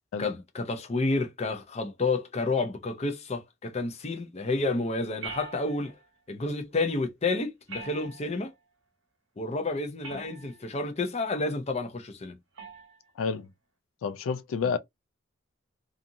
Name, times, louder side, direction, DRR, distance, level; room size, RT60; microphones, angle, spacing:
voice 1, 0.2-5.9 6.3-8.5 9.4-12.3, left 3 dB, 35° left, 0.6 m, -30 dB
sound 1, 5.2-6.1 7.7-8.5 10.0-10.7 12.6-13.0, right 4 dB, 75° right, 1.0 m, -42 dB
voice 2, 13.2-13.5 14.0-14.8, left 5 dB, 85° left, 0.4 m, -29 dB
2.7 x 2.5 x 2.6 m
head